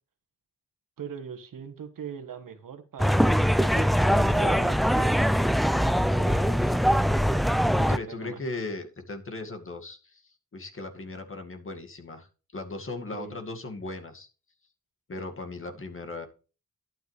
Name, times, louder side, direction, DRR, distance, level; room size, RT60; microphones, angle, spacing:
voice 1, 1.0-3.4 3.7-5.3 6.1-6.8 8.1-8.4 13.1-13.4, right 8 dB, 75° right, 1.6 m, -41 dB
sound 1, 3.0-8.0, equal, ahead, 0.4 m, -22 dB
voice 2, 7.8-12.3 12.5-14.3 15.1-16.3, left 2 dB, 40° left, 2.1 m, -37 dB
11.5 x 9.2 x 3.3 m
cardioid pair, 85°, 33 cm